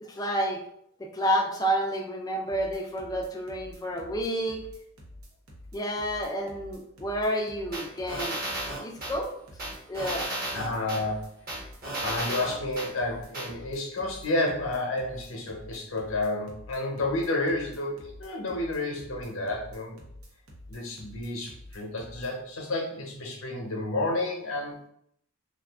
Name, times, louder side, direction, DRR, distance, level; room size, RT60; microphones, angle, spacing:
voice 1, 0.0-0.6 1.0-4.6 5.7-8.4 8.8-9.3 9.9-10.3, equal, 15° left, 1 dB, 0.3 m, -30 dB
sound 1, 2.5-22.3, left 1 dB, 90° right, 0.8 m, -48 dB
sound 2, 7.7-9.1 9.6-11.0 11.5-12.9 13.3-13.5, right 1 dB, 45° right, 1.1 m, -33 dB
voice 2, 10.5-11.3 12.0-20.0 20.7-24.9, left 2 dB, 70° left, 0 dB, 0.8 m, -31 dB
2.5 x 2.3 x 3.4 m, 0.71 s
head